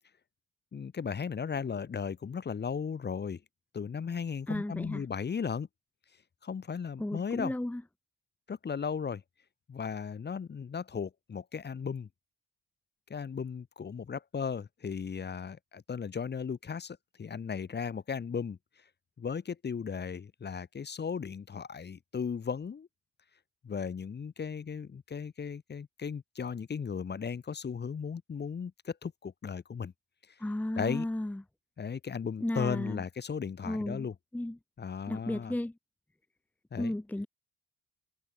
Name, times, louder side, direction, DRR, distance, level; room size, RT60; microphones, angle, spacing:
voice 1, 0.7-3.4 3.7-5.7 6.4-7.5 8.5-9.2 9.7-12.1 13.1-18.6 19.2-22.9 23.6-29.9 30.8-31.1 31.8-34.1 34.8-35.5 36.7-36.9, left 6 dB, 35° left, 1.2 m, -36 dB
voice 2, 4.5-5.1 7.0-7.8 30.4-31.4 32.4-33.0 33.6-34.1 34.3-34.6 35.1-35.7 36.8-37.3, left 1 dB, 5° left, 0.9 m, -34 dB
cardioid pair, 90°, 30 cm